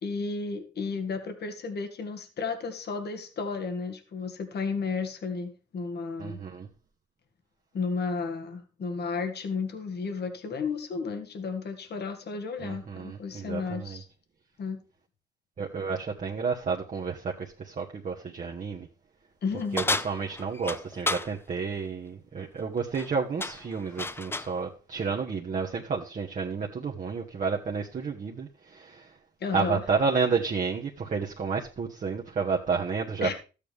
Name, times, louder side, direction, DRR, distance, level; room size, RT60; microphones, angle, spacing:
voice 1, 0.0-6.4 7.7-14.1 14.6-14.8 19.4-19.8 29.4-29.8 33.2-33.3, left 4 dB, 55° left, 1.9 m, -33 dB
voice 2, 6.2-6.7 12.6-14.0 15.6-18.9 19.7-29.1 29.5-33.3, right 5 dB, 40° right, 1.3 m, -31 dB
sound 1, 19.8-21.3 22.8-23.1 23.4-24.6, left 2 dB, 10° left, 0.4 m, -31 dB
13.0 x 8.5 x 3.5 m
cardioid pair, 90°, 20 cm